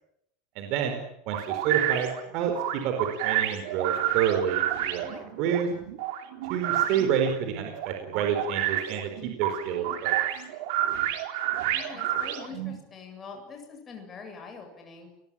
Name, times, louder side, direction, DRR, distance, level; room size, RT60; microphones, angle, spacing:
voice 1, 0.5-2.5 2.8-5.0 5.4-5.7 6.5-10.1, right 8 dB, 45° right, 4 dB, 4.6 m, -28 dB
sound 1, 1.3-12.8, right 12 dB, 60° right, 4.2 m, -29 dB
voice 2, 5.0-5.4 9.8-10.0 11.7-15.1, left 5 dB, 15° left, 3 dB, 7.5 m, -44 dB
29.5 x 22.0 x 8.9 m, 0.76 s
supercardioid pair, 175°, 0 cm